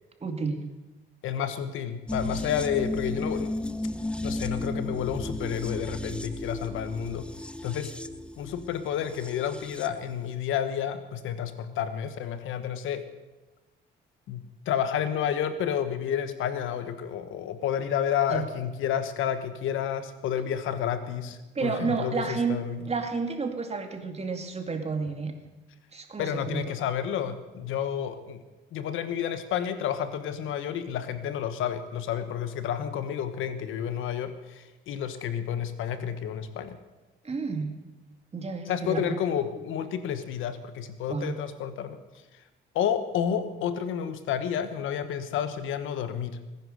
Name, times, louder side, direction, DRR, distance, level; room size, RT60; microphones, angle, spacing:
voice 1, 0.2-0.7 18.3-18.4 21.5-22.6 22.8-25.3 25.9-26.8 37.2-37.8 38.3-39.2 41.1-41.4, right 4 dB, 30° right, 5 dB, 2.3 m, -31 dB
voice 2, 1.2-3.5 4.2-7.3 7.6-7.9 8.4-13.1 14.3-22.8 26.2-28.4 28.7-36.8 38.6-42.0 42.7-46.4, left 9 dB, 85° left, 11 dB, 1.3 m, -30 dB
sound 1, 2.1-10.0 10.3-10.4, left 1 dB, 5° left, 0.7 m, -34 dB
18.5 x 10.5 x 6.5 m, 1.1 s
cardioid pair, 90°, 20 cm